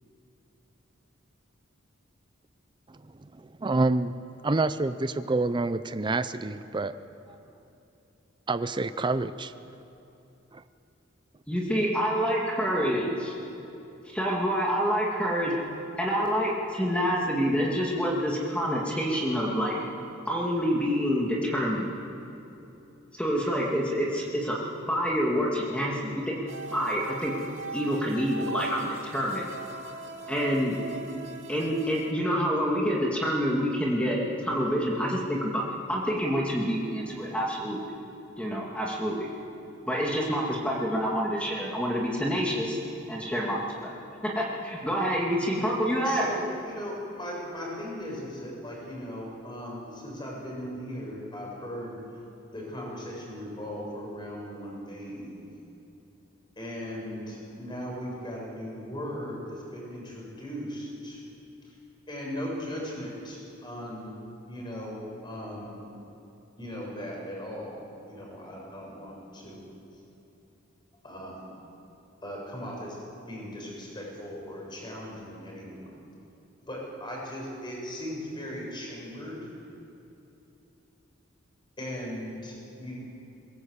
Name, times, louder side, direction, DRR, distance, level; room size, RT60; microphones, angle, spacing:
voice 1, 3.4-4.2 4.4-6.9 7.3-7.4 8.5-9.5 10.5-10.6, right 2 dB, 25° right, 0.5 m, -27 dB
voice 2, 11.5-13.3 14.0-15.5 16.0-19.7 20.3-21.9 23.1-24.6 24.9-26.4 26.7-27.3 27.7-29.5 30.3-30.8 31.5-35.6 35.9-37.8 38.4-39.3 39.9-42.8 43.1-43.9 44.2-46.3, equal, 5° left, 2.3 m, -27 dB
sound 1, 26.5-32.1, right 3 dB, 80° right, 2.1 m, -39 dB
voice 3, 46.0-52.0 52.5-55.4 56.6-61.2 61.6-61.8 62.1-64.2 64.5-65.9 66.6-67.8 68.1-69.6 71.0-71.6 72.2-73.0 73.3-76.0 76.7-79.5 81.8-83.0, equal, 25° left, 6.7 m, -38 dB
21.5 x 18.5 x 8.2 m
head